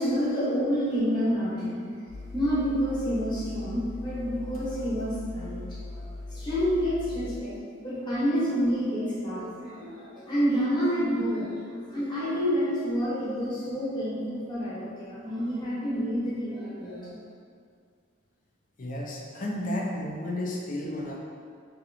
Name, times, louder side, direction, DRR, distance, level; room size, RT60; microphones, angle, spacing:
voice 1, 0.0-1.9 2.3-6.0 6.3-7.6 7.8-17.2, equal, 20° left, -9 dB, 1.0 m, -28 dB
sound 1, 2.1-7.4, left 2 dB, 80° left, 0.7 m, -39 dB
voice 2, 18.8-21.2, left 1 dB, 40° left, -2 dB, 0.5 m, -32 dB
3.0 x 2.9 x 3.9 m, 2.1 s
head